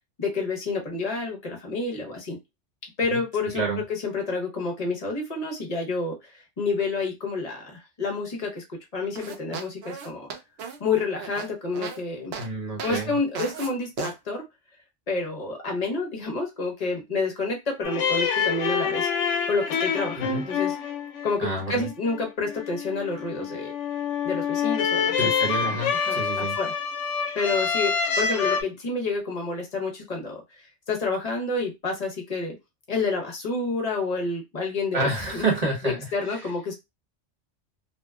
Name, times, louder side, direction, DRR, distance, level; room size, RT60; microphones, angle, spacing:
voice 1, 0.2-2.4 3.0-3.6 3.9-8.6 8.9-10.3 10.8-12.3 12.8-14.4 15.1-20.7 21.2-23.7 24.2-25.3 25.6-26.8 27.3-32.5 32.9-35.5 36.1-36.7, left 3 dB, 35° left, 1 dB, 0.8 m, -29 dB
sound 1, 9.2-12.0 12.3-12.5 12.8-13.0 13.4-13.7 14.0-14.1, right 6 dB, 65° right, 0.7 m, -35 dB
voice 2, 12.4-13.2 20.2-20.4 21.4-21.9 25.2-26.6 34.9-36.4, right 2 dB, 35° right, -2 dB, 1.1 m, -29 dB
sound 2, 17.8-28.6, left 6 dB, 75° left, 0.9 m, -27 dB
2.7 x 2.1 x 2.3 m, 0.21 s
omnidirectional pair, 1.3 m